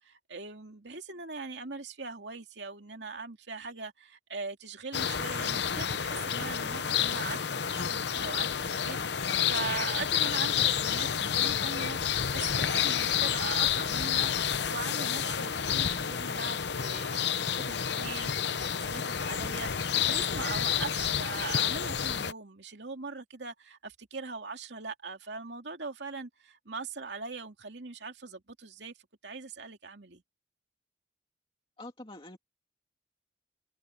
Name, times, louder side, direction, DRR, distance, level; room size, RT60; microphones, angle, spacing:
voice 1, 0.0-17.2 17.5-28.9 29.2-30.2, right 4 dB, 65° right, 2.6 m, -41 dB
sound 1, 4.9-22.3, left 8 dB, 65° left, 0.8 m, -30 dB
voice 2, 31.8-32.4, left 2 dB, 25° left, 2.5 m, -45 dB
head